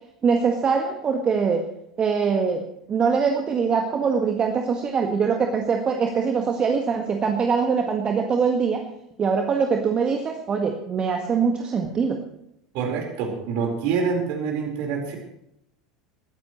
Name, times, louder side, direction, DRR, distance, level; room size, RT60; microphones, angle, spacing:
voice 1, 0.2-1.6 2.0-8.9 9.2-12.2, right 5 dB, 25° right, 3 dB, 1.6 m, -23 dB
voice 2, 12.7-15.2, right 5 dB, 50° right, 2 dB, 4.4 m, -26 dB
20.5 x 14.5 x 3.2 m, 0.79 s
figure-of-eight pair, 75°, 3 cm